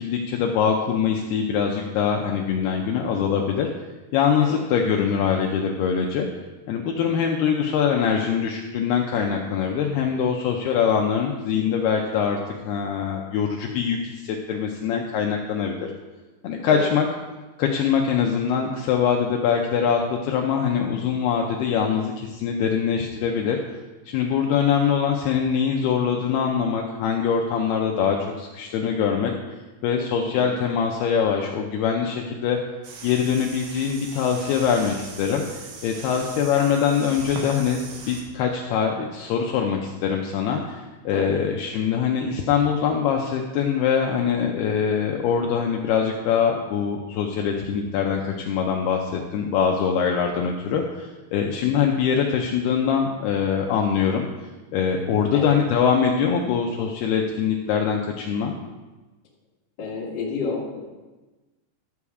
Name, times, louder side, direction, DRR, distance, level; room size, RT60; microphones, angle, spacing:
voice 1, 0.0-3.7 4.1-6.3 6.7-12.4 12.7-15.9 16.4-17.1 17.6-23.6 24.1-29.3 29.8-32.6 33.0-37.8 38.1-54.3 54.7-58.5, left 7 dB, 90° left, 1 dB, 2.2 m, -23 dB
voice 2, 30.2-30.5 41.1-41.4 51.5-51.8 55.3-55.6 59.8-60.8, left 4 dB, 45° left, -3 dB, 1.5 m, -31 dB
sound 1, 32.8-38.2, right 4 dB, 65° right, 2.7 m, -39 dB
12.5 x 7.1 x 4.8 m, 1.2 s
omnidirectional pair, 5.6 m